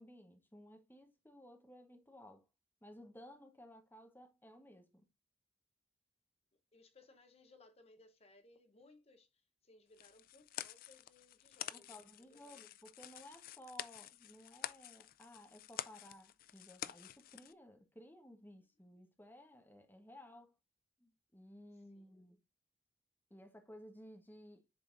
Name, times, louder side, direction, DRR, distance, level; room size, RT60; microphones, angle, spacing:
voice 1, 0.0-2.4 2.8-5.1 11.7-20.5 21.0-22.4 23.3-24.6, equal, 10° left, 1.1 m, -57 dB
voice 2, 6.5-12.6 21.8-22.3, left 2 dB, 35° left, 0.8 m, -65 dB
sound 1, 9.9-17.5, left 11 dB, 50° left, 0.3 m, -49 dB
10.5 x 3.9 x 2.5 m
head